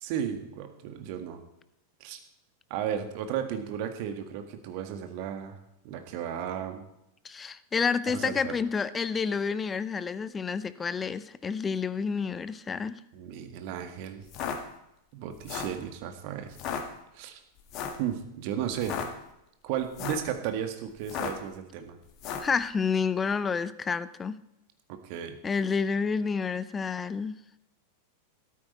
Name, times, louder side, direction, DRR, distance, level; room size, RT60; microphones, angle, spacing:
voice 1, 0.0-1.4 2.0-2.2 2.7-5.6 5.8-6.8 8.1-8.5 13.1-14.2 15.1-16.6 17.1-17.4 18.0-18.9 19.6-22.0 24.9-25.4, right 9 dB, 45° right, 1.8 m, -34 dB
voice 2, 7.2-13.0 22.4-24.4 25.4-27.4, left 5 dB, 15° left, 0.6 m, -29 dB
sound 1, 14.2-14.6 15.3-15.8 16.5-16.8 17.7-18.0 18.7-19.1 19.8-20.3 21.0-21.5 22.2-22.5, left 7 dB, 40° left, 1.9 m, -34 dB
13.0 x 13.0 x 4.4 m
figure-of-eight pair, 90°, 0 cm